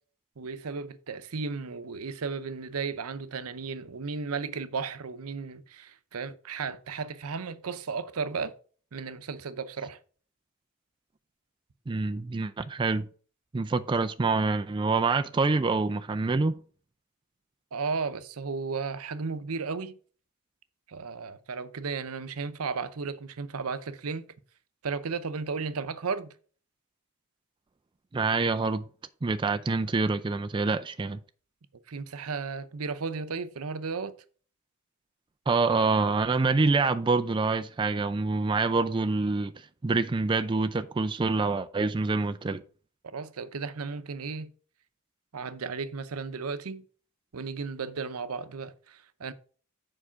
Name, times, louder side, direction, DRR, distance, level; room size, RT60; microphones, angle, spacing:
voice 1, 0.4-8.5 8.9-10.0 17.7-20.0 20.9-24.3 24.8-26.3 31.9-34.1 43.1-44.5 45.3-46.8 47.3-49.3, right 5 dB, 90° right, 0.7 m, -34 dB
voice 2, 11.9-13.1 13.5-16.6 28.1-28.8 29.2-31.2 35.5-39.5 39.8-42.6, right 3 dB, 20° right, 0.3 m, -26 dB
7.5 x 4.8 x 5.6 m
head